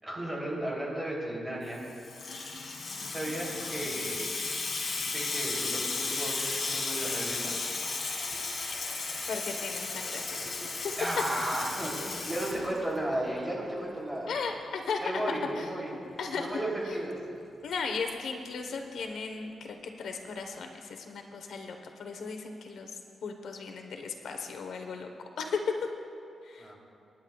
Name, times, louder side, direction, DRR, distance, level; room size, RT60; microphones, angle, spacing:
voice 1, 0.0-1.8 2.7-4.3 5.0-7.5 11.0-14.3 15.0-15.9 16.3-17.2 26.6-26.8, right 1 dB, 15° right, -4 dB, 3.2 m, -34 dB
Water tap faucet / Sink (filling or washing), 1.7-13.2, left 3 dB, 50° left, 2.0 m, -34 dB
voice 2, 9.3-10.4 14.3-15.0 15.3-17.0 17.6-25.1 25.4-25.8 26.4-26.7, left 5 dB, 80° left, 4 dB, 1.1 m, -36 dB
28.5 x 10.5 x 2.4 m, 2.4 s
wide cardioid pair, 140°, 0 cm